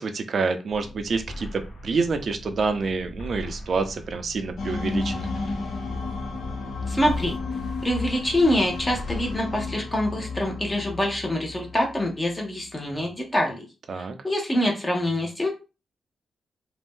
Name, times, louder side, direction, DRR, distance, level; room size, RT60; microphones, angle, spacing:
voice 1, 0.0-5.3 13.9-14.2, right 4 dB, 50° right, 7 dB, 0.4 m, -27 dB
sound 1, 0.7-9.4, equal, 65° left, 0.9 m, -40 dB
sound 2, 4.6-12.7, left 4 dB, 85° left, 0.6 m, -33 dB
voice 2, 6.9-7.4 7.8-13.6 14.0-15.5, left 1 dB, 20° left, 0 dB, 0.6 m, -25 dB
2.5 x 2.0 x 3.4 m, 0.30 s
wide cardioid pair, 130°, 0 cm